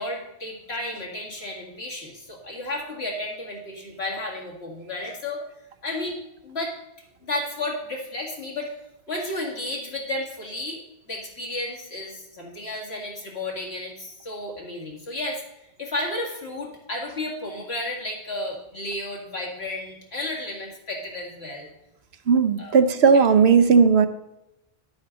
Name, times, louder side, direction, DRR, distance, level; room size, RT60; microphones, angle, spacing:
voice 1, 0.0-5.4 5.8-6.7 7.2-8.7 9.1-15.4 15.8-21.7 22.6-22.9, left 1 dB, 80° left, -2 dB, 2.5 m, -32 dB
voice 2, 22.3-24.1, right 5 dB, 85° right, 10 dB, 1.1 m, -16 dB
11.0 x 8.5 x 3.9 m, 0.89 s
omnidirectional pair, 1.1 m